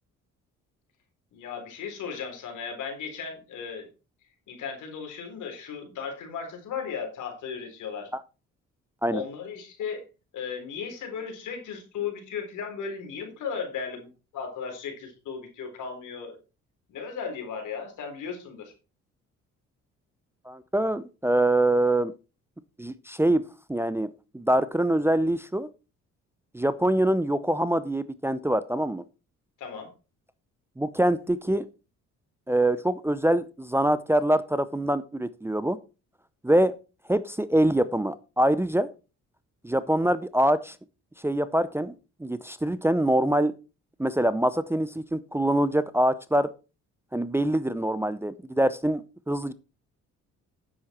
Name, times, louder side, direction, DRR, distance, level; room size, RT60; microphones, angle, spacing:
voice 1, 1.3-3.9 4.5-8.1 9.1-10.0 10.3-16.4 16.9-18.7 29.6-29.9, left 6 dB, 80° left, 4 dB, 3.9 m, -36 dB
voice 2, 20.5-22.1 22.8-23.4 23.7-24.1 24.3-25.7 26.5-29.0 30.8-31.6 32.5-35.8 36.4-36.7 37.1-38.9 39.6-40.8 41.2-41.9 42.2-43.5 44.0-46.5 47.1-49.0 49.3-49.5, right 1 dB, 10° right, 13 dB, 0.6 m, -24 dB
9.7 x 7.9 x 4.4 m, 0.31 s
cardioid pair, 90°, 30 cm